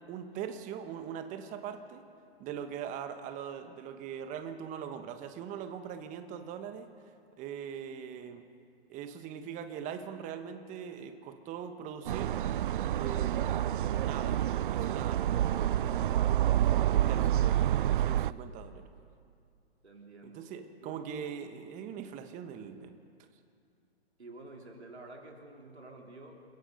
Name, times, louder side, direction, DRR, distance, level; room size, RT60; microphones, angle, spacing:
voice 1, 0.1-2.0 2.4-6.9 7.4-8.4 8.9-12.4 12.9-15.8 16.8-18.9 20.2-23.3, right 8 dB, 25° right, 8 dB, 1.3 m, -41 dB
sound 1, 12.1-18.3, right 12 dB, 50° right, 0.5 m, -28 dB
voice 2, 19.8-20.5 20.8-21.0 24.2-26.4, right 2 dB, 80° right, 1 dB, 3.7 m, -49 dB
30.0 x 16.5 x 5.4 m, 2.3 s
figure-of-eight pair, 120°, 32 cm